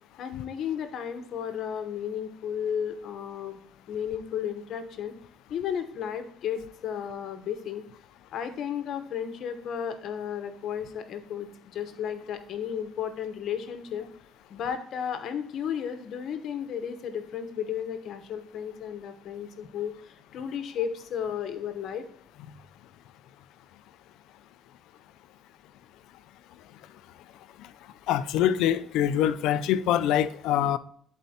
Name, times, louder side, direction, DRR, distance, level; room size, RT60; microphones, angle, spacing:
voice 1, 0.2-3.6 3.9-5.1 5.5-7.8 8.3-14.1 14.5-22.0, left 8 dB, 70° left, 1.0 m, -33 dB
voice 2, 28.1-30.8, left 11 dB, 90° left, 0.4 m, -24 dB
11.5 x 4.2 x 2.8 m
cardioid pair, 105°, 0 cm